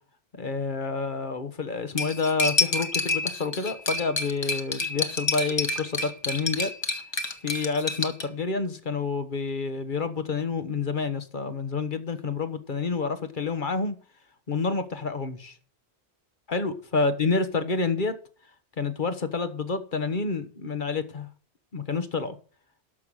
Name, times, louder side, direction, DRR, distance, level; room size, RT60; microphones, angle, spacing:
voice 1, 0.4-6.7 7.4-13.9 14.5-15.6 16.5-18.1 18.8-21.3 21.7-22.4, left 4 dB, 50° left, 1.3 m, -28 dB
Cutlery silverware, 2.0-8.2, left 2 dB, 25° left, 1.1 m, -28 dB
12.5 x 5.8 x 6.3 m
omnidirectional pair, 1.1 m